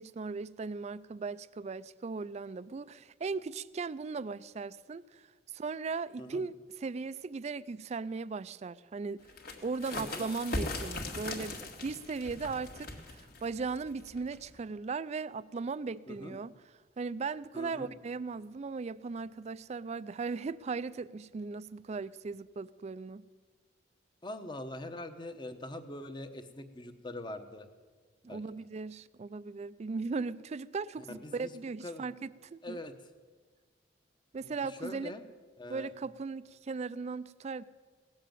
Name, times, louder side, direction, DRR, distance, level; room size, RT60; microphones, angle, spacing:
voice 1, 0.0-5.3 5.5-9.2 9.6-16.5 17.0-23.3 28.2-32.8 34.3-35.1 35.7-37.6, right 4 dB, 35° right, 0.3 m, -38 dB
sound 1, 9.2-14.6, left 2 dB, 50° left, 2.0 m, -40 dB
voice 2, 16.1-16.4 17.5-17.9 24.2-27.7 28.3-28.4 31.2-31.5 31.8-32.1 32.6-32.9 34.4-35.2 35.6-35.9, left 1 dB, 25° left, 0.9 m, -43 dB
17.0 x 7.6 x 9.0 m
head